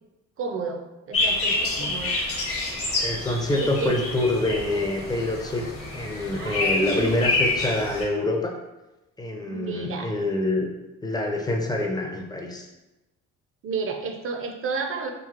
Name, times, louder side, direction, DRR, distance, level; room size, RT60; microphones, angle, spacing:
voice 1, 0.4-2.2 3.5-4.1 6.3-7.3 9.4-10.1 13.6-15.1, right 4 dB, 45° right, 4 dB, 0.5 m, -31 dB
sound 1, 1.1-8.0, left 2 dB, 50° left, 1.0 m, -28 dB
voice 2, 3.0-8.5 9.2-10.7 11.0-12.7, left 2 dB, 15° left, 1 dB, 0.5 m, -26 dB
3.1 x 2.8 x 2.5 m, 1.0 s
cardioid pair, 90°, 30 cm